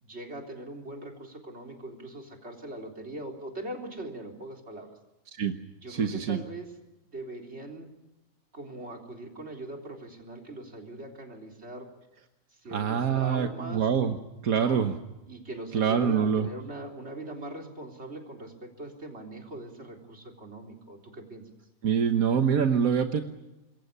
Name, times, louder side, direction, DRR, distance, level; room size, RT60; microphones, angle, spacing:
voice 1, 0.0-5.0 5.8-6.7 7.1-7.9 8.5-11.9 12.5-13.9 14.5-14.9 15.3-21.4, right 2 dB, 50° right, 2 dB, 4.1 m, -41 dB
voice 2, 5.9-6.4 12.7-14.2 14.4-14.9 15.7-16.5 21.8-23.2, right 7 dB, 85° right, 6 dB, 1.7 m, -25 dB
26.5 x 22.5 x 6.8 m, 0.97 s
omnidirectional pair, 1.5 m